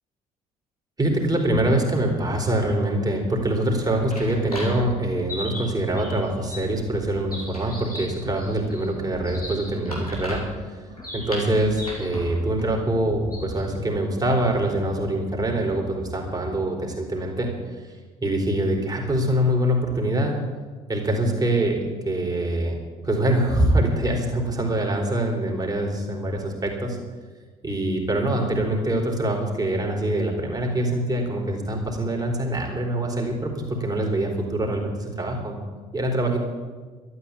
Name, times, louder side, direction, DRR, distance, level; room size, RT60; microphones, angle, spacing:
voice 1, 1.0-10.8 11.1-17.5 17.8-20.4 20.9-22.8 23.0-27.0 27.6-35.6 35.9-36.4, right 1 dB, 20° right, 1 dB, 4.0 m, -24 dB
sound 1, 3.5-13.7, left 1 dB, 90° left, 2.9 m, -36 dB
12.5 x 9.7 x 8.6 m, 1.4 s
figure-of-eight pair, 50°, 19 cm